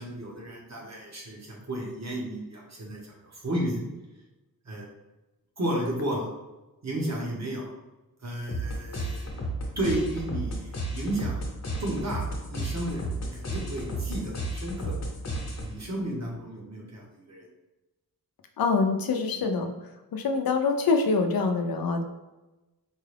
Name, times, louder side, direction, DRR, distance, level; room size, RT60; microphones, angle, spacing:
voice 1, 0.0-3.8 4.6-4.9 5.6-6.3 6.8-7.7 8.2-9.3 9.8-11.5 11.8-15.0 15.6-17.5, right 1 dB, 45° right, -2 dB, 1.1 m, -33 dB
sound 1, 8.5-15.9, right 1 dB, 45° left, 1.0 m, -33 dB
voice 2, 18.6-19.7 20.1-22.0, left 4 dB, 75° left, 5 dB, 0.6 m, -25 dB
4.6 x 2.3 x 3.3 m, 1.0 s
wide cardioid pair, 85°, 36 cm